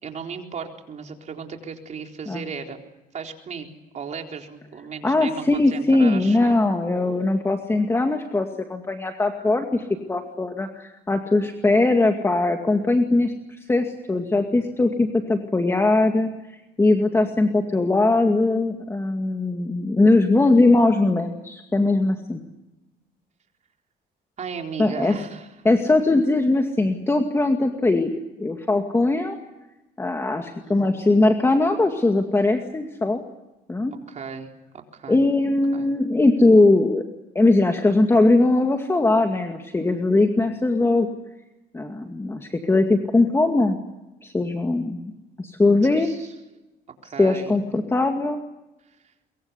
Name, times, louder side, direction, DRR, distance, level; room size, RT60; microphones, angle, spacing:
voice 1, 0.0-2.8 3.1-3.7 3.9-6.6 24.4-25.5 30.6-31.0 34.1-34.5 34.9-35.2 35.7-35.9 46.0-46.3 47.0-47.5, right 6 dB, 45° right, 3 dB, 4.1 m, -35 dB
voice 2, 5.0-13.3 13.7-16.3 16.8-22.4 24.8-25.2 25.6-28.1 28.4-29.4 30.0-33.2 33.7-33.9 35.1-37.0 37.3-41.1 41.7-43.8 44.2-45.1 45.4-46.1 47.2-48.4, left 2 dB, 15° left, 4 dB, 2.2 m, -20 dB
24.0 x 23.0 x 8.2 m, 1.0 s
cardioid pair, 110°, 17 cm